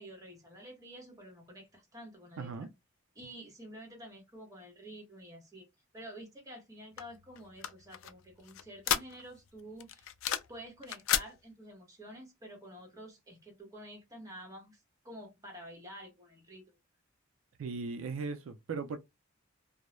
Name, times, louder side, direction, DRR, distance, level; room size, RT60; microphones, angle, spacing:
voice 1, 0.0-2.7 3.1-5.7 5.9-10.1 10.5-16.8, equal, 15° right, 0.9 m, -49 dB
voice 2, 2.4-2.7 17.6-19.0, right 4 dB, 70° right, 0.4 m, -38 dB
sound 1, 7.0-9.5 9.8-10.6 10.8-11.3, left 10 dB, 75° left, 0.3 m, -33 dB
2.2 x 2.0 x 2.9 m
head